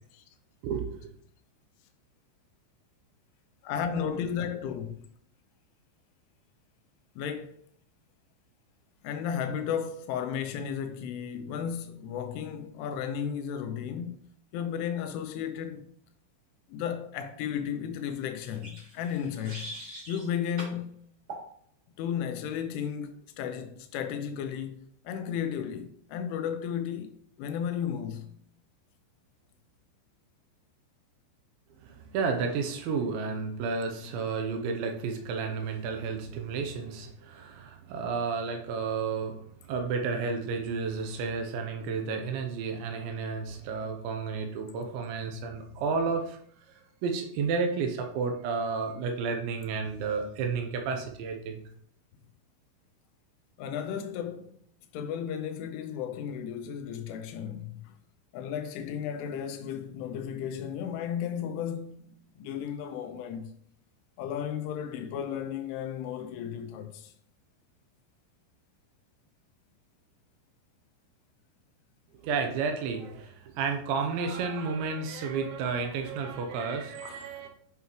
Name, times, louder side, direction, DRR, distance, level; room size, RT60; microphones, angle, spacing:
voice 1, 0.6-1.1 31.8-46.4 46.7-51.6 72.2-77.5, right 5 dB, 80° right, 2.8 m, -32 dB
voice 2, 3.6-4.9 7.2-7.6 9.0-14.3 14.5-15.9 16.7-19.7 20.1-21.0 22.0-28.3 53.6-54.6 54.9-57.8 58.3-62.0 62.4-63.5 64.2-67.1 77.0-77.2, left 8 dB, 85° left, 3.0 m, -34 dB
sound 1, 18.4-20.3 20.6-20.8 21.3-21.5, right 1 dB, 25° right, 2.2 m, -42 dB
9.2 x 5.7 x 3.1 m
omnidirectional pair, 5.9 m